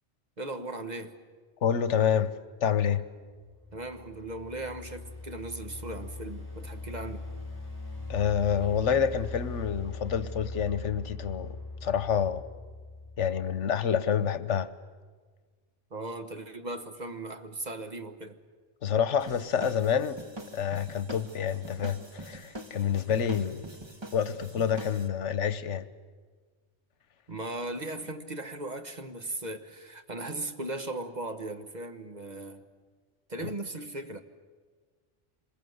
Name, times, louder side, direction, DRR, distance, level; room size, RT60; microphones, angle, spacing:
voice 1, 0.4-1.1 3.7-7.2 15.9-18.4 27.3-32.6 33.3-34.2, right 2 dB, 40° right, 1.3 m, -38 dB
voice 2, 1.6-2.3 2.6-3.0 8.1-12.4 13.2-14.7 18.8-20.2 20.5-23.7 24.1-25.9, left 8 dB, 80° left, 1.2 m, -28 dB
sound 1, 3.4-13.6, left 3 dB, 15° left, 4.0 m, -41 dB
sound 2, 19.2-25.1, right 1 dB, 25° right, 1.4 m, -45 dB
26.5 x 21.5 x 8.0 m
omnidirectional pair, 1.2 m